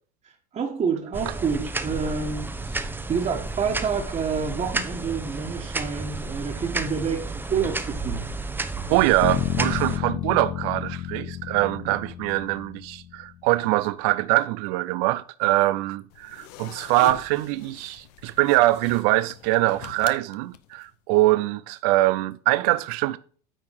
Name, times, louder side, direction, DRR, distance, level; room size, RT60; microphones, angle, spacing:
voice 1, 0.2-8.3, right 6 dB, 35° right, 1.6 m, -28 dB
sound 1, 1.1-10.0, right 3 dB, 10° right, 0.8 m, -32 dB
voice 2, 8.9-23.2, right 18 dB, 70° right, 0.5 m, -23 dB
sound 2, 9.2-13.3, left 13 dB, 50° left, 0.5 m, -31 dB
sound 3, 16.1-20.9, left 11 dB, 75° left, 0.8 m, -43 dB
9.0 x 4.4 x 6.5 m
hypercardioid pair, 90°, 21 cm